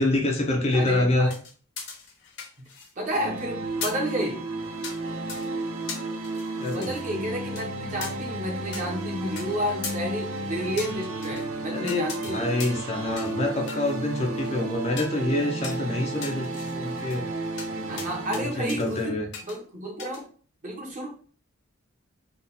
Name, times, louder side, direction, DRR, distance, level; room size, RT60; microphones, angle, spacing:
voice 1, 0.0-1.3 6.6-7.0 11.7-17.2 17.7-19.3, left 2 dB, 30° left, 1 dB, 0.6 m, -26 dB
voice 2, 0.7-1.4 2.6-2.7 3.0-4.4 6.7-12.5 17.9-19.2 19.5-20.2 20.6-21.1, equal, 35° right, 0 dB, 1.1 m, -31 dB
sound 1, 1.3-3.0 3.3-3.4 3.8-4.1 4.8-5.0 5.3-5.5 5.9-7.1 7.6-7.7 8.0-8.1 8.7-8.8 9.4-9.5 9.8-10.0 10.8-11.5 11.9-12.3 12.6-12.9 13.2-13.4 13.7-14.5 15.0-15.2 15.6-15.8 16.2-17.2 17.6-17.7 18.0-18.4 18.7-19.0 19.3-19.6 20.0-20.2, left 5 dB, 55° left, 1.0 m, -38 dB
sound 2, 3.1-18.5, right 2 dB, 80° right, 0.8 m, -33 dB
3.9 x 2.5 x 4.1 m, 0.42 s
head